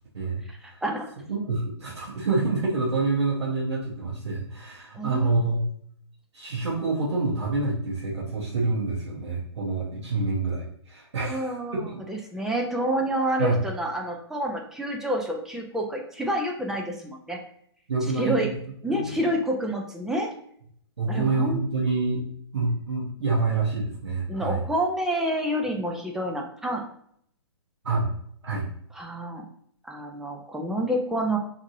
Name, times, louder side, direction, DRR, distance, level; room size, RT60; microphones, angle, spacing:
voice 1, 0.1-0.8 1.3-5.7 6.3-12.0 13.4-13.6 17.9-18.6 18.9-19.2 21.0-22.2 22.5-24.6 27.8-28.1 28.4-28.7, right 3 dB, 75° right, -5 dB, 0.8 m, -27 dB
voice 2, 4.9-5.3 11.2-11.8 12.1-17.4 18.2-18.5 18.8-20.3 21.1-21.6 24.3-26.8 29.0-29.4 29.9-31.4, right 1 dB, 5° right, 0 dB, 0.3 m, -28 dB
2.8 x 2.6 x 2.6 m, 0.65 s
hypercardioid pair, 130°, 15 cm